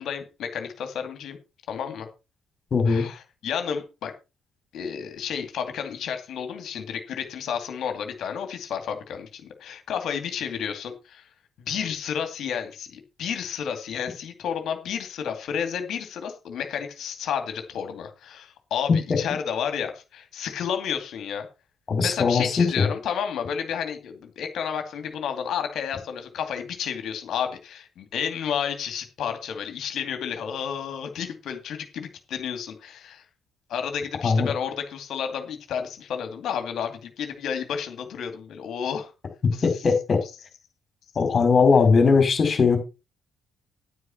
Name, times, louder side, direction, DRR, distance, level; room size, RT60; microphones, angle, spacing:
voice 1, 0.0-1.4 1.7-2.1 2.8-4.1 4.7-11.3 11.6-21.5 22.0-33.2 33.7-39.1 39.5-39.6, left 8 dB, 60° left, 2.6 m, -31 dB
voice 2, 2.7-3.1 21.9-22.9 34.2-34.5 39.6-40.2 41.2-42.8, left 5 dB, 40° left, 5.0 m, -19 dB
10.0 x 9.6 x 4.4 m
figure-of-eight pair, 45°, 0 cm